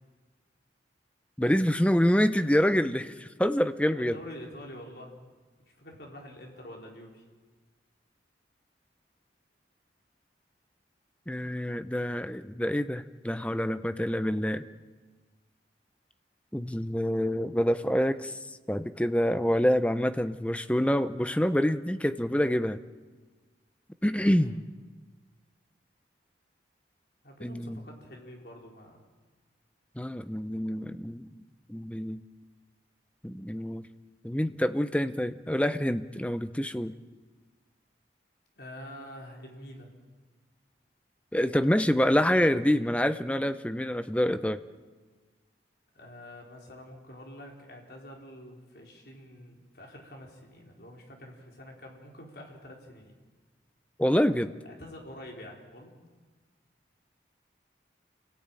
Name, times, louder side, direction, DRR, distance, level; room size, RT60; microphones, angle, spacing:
voice 1, 1.4-4.2 11.3-14.6 16.5-18.4 18.7-22.8 24.0-24.6 27.4-27.8 30.0-31.3 31.7-32.2 33.2-33.9 34.2-36.9 41.3-44.6 54.0-54.5, equal, 5° left, 11 dB, 0.8 m, -26 dB
voice 2, 3.9-5.1 5.8-7.2 24.3-24.6 27.2-29.0 38.6-39.9 45.9-53.2 54.8-56.1, left 1 dB, 65° left, 0 dB, 4.7 m, -46 dB
28.5 x 18.0 x 9.1 m, 1.4 s
head